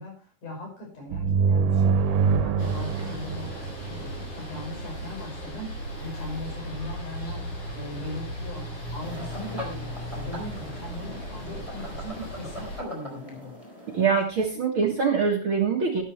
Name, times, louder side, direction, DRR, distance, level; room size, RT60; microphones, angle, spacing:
voice 1, 0.0-13.6, left 1 dB, 70° left, 0 dB, 7.5 m, -39 dB
sound 1, 1.1-4.7, right 5 dB, 85° right, 2.4 m, -25 dB
sound 2, 2.6-12.8, equal, 45° left, 6.4 m, -37 dB
sound 3, 9.0-14.2, equal, 10° left, 4.1 m, -41 dB
voice 2, 13.9-16.0, right 5 dB, 50° right, 1 dB, 1.9 m, -24 dB
13.0 x 12.5 x 3.2 m, 0.34 s
omnidirectional pair, 3.7 m